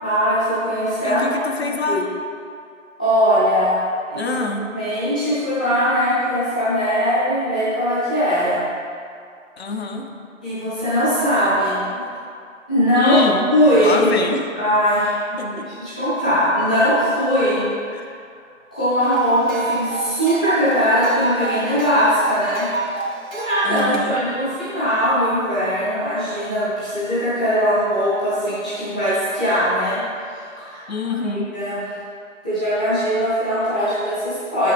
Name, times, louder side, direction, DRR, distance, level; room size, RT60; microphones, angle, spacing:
voice 1, 0.0-2.0 3.0-3.8 4.1-4.3 4.7-8.6 10.4-11.8 12.7-13.1 13.5-14.0 14.5-17.6 18.7-22.7 23.3-30.0 30.6-31.1 31.5-31.9 32.4-34.7, equal, 5° left, -13 dB, 0.7 m, -20 dB
voice 2, 1.0-2.1 4.2-4.7 9.6-10.1 13.0-13.5 13.8-14.5 15.4-15.7 17.9-18.1 23.6-24.2 30.9-31.5, left 3 dB, 55° left, 4 dB, 0.8 m, -25 dB
sound 1, 19.0-24.0, right 3 dB, 85° right, 1.5 m, -28 dB
8.2 x 6.0 x 3.3 m, 2.3 s
figure-of-eight pair, 155°, 39 cm